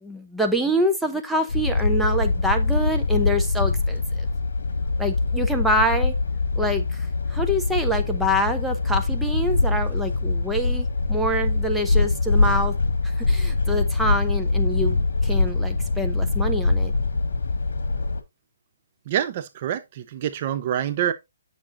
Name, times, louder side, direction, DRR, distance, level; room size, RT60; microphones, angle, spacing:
voice 1, 0.0-4.3 5.0-6.2 6.6-12.8 13.2-16.9, equal, ahead, 0.9 m, -26 dB
sound 1, 1.5-18.2, left 3 dB, 75° left, 1.6 m, -23 dB
voice 2, 19.1-21.1, right 10 dB, 35° right, 0.6 m, -26 dB
8.9 x 6.6 x 2.6 m
hypercardioid pair, 160°, 0 cm